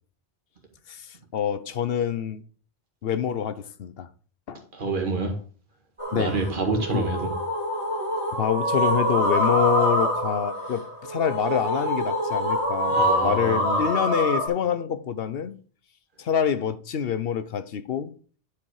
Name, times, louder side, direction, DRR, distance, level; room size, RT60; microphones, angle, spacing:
voice 1, 0.9-2.4 3.0-4.1 4.5-4.6 6.1-6.4 6.9-7.1 8.3-15.6 16.2-18.1, left 8 dB, 65° left, 0.9 m, -26 dB
voice 2, 4.7-5.4 6.1-7.3 12.9-13.8, right 3 dB, 50° right, 2.0 m, -27 dB
sound 1, 6.0-14.5, equal, 25° right, 2.5 m, -25 dB
10.5 x 5.0 x 4.8 m
omnidirectional pair, 1.1 m